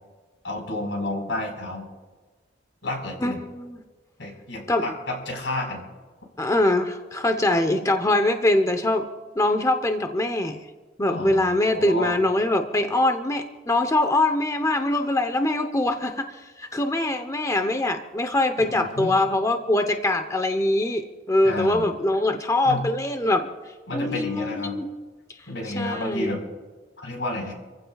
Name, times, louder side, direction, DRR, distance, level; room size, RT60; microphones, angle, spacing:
voice 1, 0.4-1.9 2.8-3.4 4.2-5.8 11.1-12.2 18.6-19.1 21.4-21.9 22.6-22.8 23.9-24.8 25.5-26.4 27.0-27.5, left 2 dB, 90° left, 1 dB, 4.6 m, -31 dB
voice 2, 3.2-3.8 4.7-4.9 6.4-9.1 9.4-10.6 11.0-23.5 23.9-24.9 25.8-26.3, left 1 dB, 20° left, 6 dB, 0.8 m, -23 dB
27.0 x 15.5 x 2.4 m, 1.3 s
head